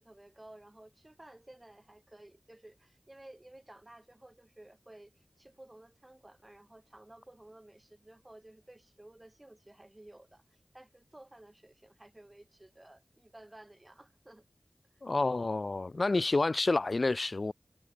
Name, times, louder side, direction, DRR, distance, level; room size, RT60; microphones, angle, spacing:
voice 1, 0.0-10.4 10.7-14.4, right 1 dB, 25° right, 5.2 m, -55 dB
voice 2, 15.0-17.5, left 3 dB, 55° left, 0.5 m, -29 dB
wide cardioid pair, 50°, 0 cm